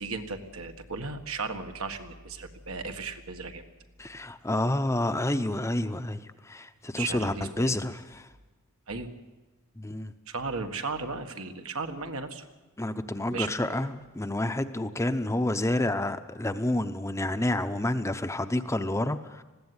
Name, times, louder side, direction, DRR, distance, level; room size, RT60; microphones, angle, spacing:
voice 1, 0.0-3.6 7.0-7.8 8.9-9.1 10.3-12.5 13.3-13.5, right 4 dB, 75° right, 6 dB, 1.7 m, -35 dB
voice 2, 4.0-8.3 9.8-10.1 12.8-19.4, left 1 dB, 15° left, 9 dB, 0.7 m, -29 dB
20.5 x 15.5 x 9.7 m, 1.2 s
head